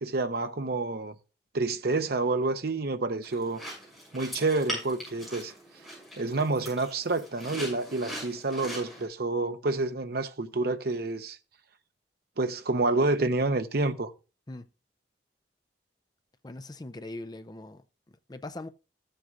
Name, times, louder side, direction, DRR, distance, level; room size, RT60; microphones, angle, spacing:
voice 1, 0.0-1.1 1.5-3.6 4.1-5.5 6.2-11.4 12.4-14.1, right 3 dB, 60° right, 0.8 m, -28 dB
sound 1, 3.2-9.0, equal, ahead, 6.6 m, -41 dB
voice 2, 16.4-17.8 18.3-18.7, left 2 dB, 25° left, 0.6 m, -40 dB
14.5 x 7.7 x 2.5 m
head